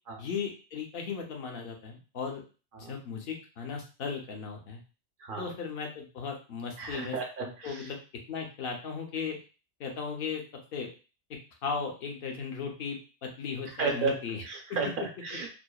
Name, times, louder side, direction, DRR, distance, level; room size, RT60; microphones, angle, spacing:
voice 1, 0.2-2.4 2.8-4.8 5.4-8.0 8.3-9.4 9.8-10.4 10.7-10.9 11.6-14.4, left 5 dB, 65° left, 2 dB, 0.8 m, -36 dB
voice 2, 5.2-5.5 6.8-7.9 13.7-15.5, right 4 dB, 60° right, 1 dB, 0.7 m, -34 dB
2.7 x 2.1 x 2.2 m, 0.34 s
omnidirectional pair, 1.1 m